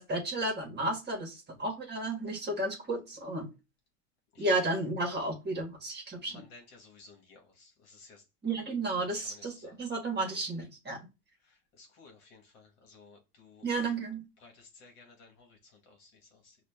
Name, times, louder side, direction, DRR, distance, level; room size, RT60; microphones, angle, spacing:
voice 1, 0.0-3.5 4.4-6.4 8.4-11.0 13.6-14.2, right 2 dB, 20° right, 1.4 m, -33 dB
voice 2, 6.3-8.2 9.2-9.8 11.5-13.7 14.4-16.6, left 4 dB, 50° left, 1.3 m, -56 dB
5.9 x 2.4 x 2.3 m
supercardioid pair, 125°, 48 cm